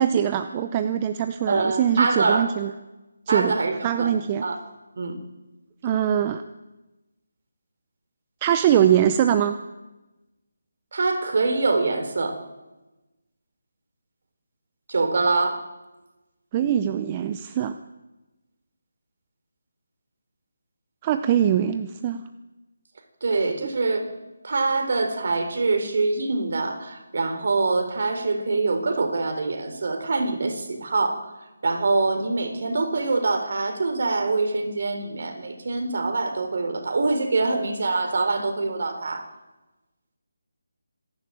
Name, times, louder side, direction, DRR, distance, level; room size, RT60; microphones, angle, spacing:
voice 1, 0.0-2.7 3.3-3.6 3.8-4.4 5.8-6.4 8.4-9.5 16.5-17.7 21.0-22.2, right 9 dB, 15° right, 9 dB, 0.6 m, -22 dB
voice 2, 1.5-2.5 3.3-4.1 4.4-4.6 5.0-5.2 10.9-12.4 14.9-15.7 23.2-24.1 24.4-31.3 31.6-39.2, right 3 dB, 50° right, 7 dB, 3.8 m, -24 dB
26.0 x 11.0 x 9.0 m, 1.1 s
figure-of-eight pair, 170°, 0 cm